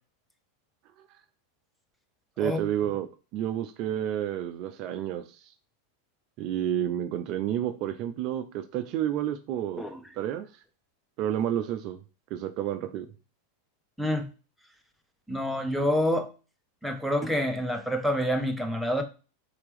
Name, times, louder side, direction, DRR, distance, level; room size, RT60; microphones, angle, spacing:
voice 1, 2.4-3.1 3.3-5.5 6.4-9.8 10.2-10.5 11.2-12.0 12.3-13.1, right 11 dB, 40° right, 0.3 m, -30 dB
voice 2, 15.3-16.3 16.8-19.0, equal, ahead, 0.6 m, -27 dB
4.1 x 2.9 x 3.4 m
figure-of-eight pair, 90°, 0 cm